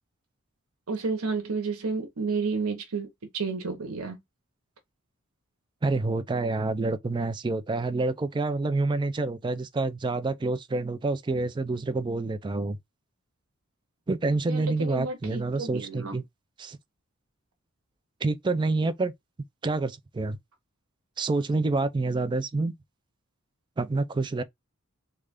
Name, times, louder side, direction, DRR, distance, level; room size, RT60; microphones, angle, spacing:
voice 1, 0.9-4.2 14.5-16.2, right 4 dB, 90° right, 0.9 m, -31 dB
voice 2, 5.8-12.8 14.1-16.2 16.6-16.8 18.2-19.1 19.6-20.4 21.2-22.7 23.8-24.4, right 3 dB, 20° right, 0.3 m, -27 dB
3.3 x 2.4 x 3.5 m
head